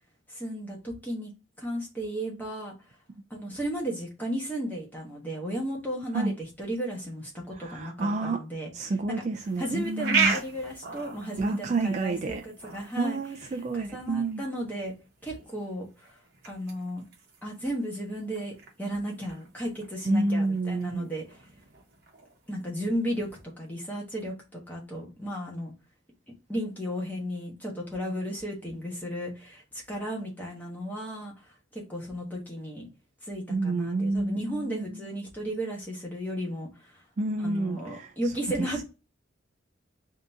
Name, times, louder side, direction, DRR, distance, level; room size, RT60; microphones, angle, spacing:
voice 1, 0.3-1.3 1.6-2.7 3.3-8.7 9.1-9.2 9.6-13.2 13.9-14.9 15.2-16.2 16.4-17.1 17.4-18.5 18.8-21.2 22.5-23.3 23.6-24.3 24.7-25.7 26.5-31.3 31.7-32.9 33.2-37.0 37.4-38.8, equal, 10° left, 1.1 m, -34 dB
voice 2, 7.5-8.4 8.7-10.3 11.4-12.4 13.0-14.4 20.0-21.1 33.5-35.1 37.2-38.8, right 2 dB, 35° right, 0.3 m, -29 dB
sound 1, 9.3-23.4, right 5 dB, 50° right, 0.9 m, -37 dB
3.8 x 2.8 x 3.5 m
head